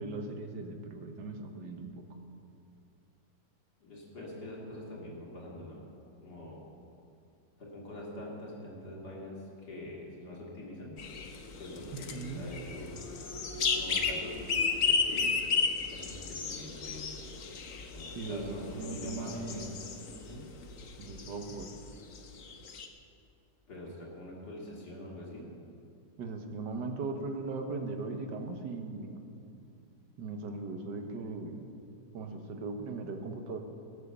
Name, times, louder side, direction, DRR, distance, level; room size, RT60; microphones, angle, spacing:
voice 1, 0.0-2.0 11.9-12.4 18.2-19.7 21.0-21.7 26.2-29.2 30.2-31.7 32.1-33.6, right 3 dB, 90° right, 5 dB, 1.8 m, -38 dB
voice 2, 3.8-5.8 6.2-6.6 7.6-9.4 9.7-11.0 11.6-12.9 13.7-15.3 15.9-17.1 17.9-19.7 20.2-20.4 23.7-25.5, left 1 dB, 75° left, -3 dB, 3.4 m, -44 dB
sound 1, 11.0-20.3 20.6-21.8 22.2-22.3 22.5-22.9, left 5 dB, 55° left, 1.3 m, -33 dB
20.0 x 7.6 x 6.8 m, 2.5 s
omnidirectional pair, 1.8 m